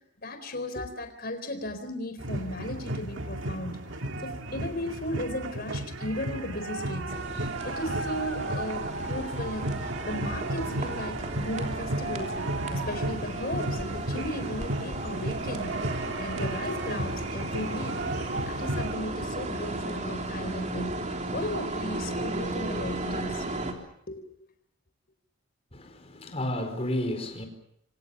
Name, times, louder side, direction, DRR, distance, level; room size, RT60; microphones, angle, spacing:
voice 1, 0.2-3.8 4.2-12.3 12.7-18.0 18.5-23.5 24.1-24.2, left 1 dB, 50° left, 4.2 m, -36 dB
sound 1, 2.2-18.9, right 1 dB, 65° right, 2.1 m, -34 dB
sound 2, 7.1-23.7, right 2 dB, 35° right, 3.6 m, -35 dB
voice 2, 25.7-27.5, left 1 dB, 30° left, 4.5 m, -32 dB
28.5 x 25.0 x 6.9 m
head